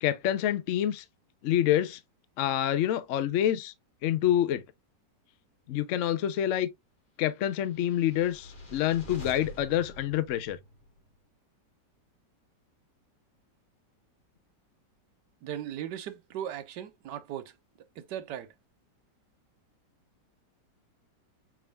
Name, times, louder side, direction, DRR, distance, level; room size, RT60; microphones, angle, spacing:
voice 1, 0.0-1.0 1.4-2.0 2.4-3.7 4.0-4.6 5.7-6.7 7.2-10.6, left 11 dB, 70° left, 0.7 m, -27 dB
sound 1, 7.7-11.1, equal, 30° left, 1.3 m, -46 dB
voice 2, 15.4-17.5 18.0-18.5, right 10 dB, 75° right, 1.3 m, -38 dB
6.1 x 3.6 x 2.2 m
omnidirectional pair, 1.9 m